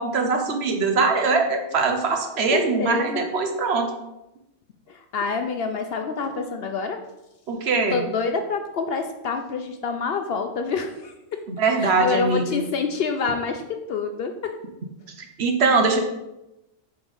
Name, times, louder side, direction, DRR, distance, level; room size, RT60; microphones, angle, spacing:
voice 1, 0.0-3.9 7.5-8.0 11.5-12.6 15.2-16.0, right 4 dB, 60° right, 4 dB, 1.0 m, -22 dB
voice 2, 2.5-3.3 4.9-7.0 7.9-11.4 11.8-14.5, left 4 dB, 65° left, 6 dB, 0.7 m, -27 dB
5.0 x 3.6 x 5.3 m, 0.93 s
omnidirectional pair, 1.3 m